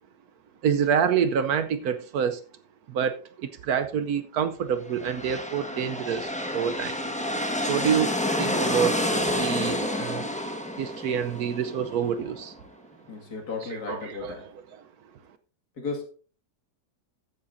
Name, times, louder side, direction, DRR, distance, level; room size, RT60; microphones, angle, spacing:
voice 1, 0.6-2.4 2.9-6.9 7.7-9.0 9.3-10.3 10.8-12.5 13.9-14.3, right 7 dB, 70° right, 1.1 m, -27 dB
sound 1, 4.9-12.5, left 1 dB, 5° left, 1.2 m, -29 dB
voice 2, 13.1-14.5 15.8-16.1, left 4 dB, 65° left, 2.6 m, -35 dB
14.0 x 9.9 x 2.6 m
omnidirectional pair, 1.8 m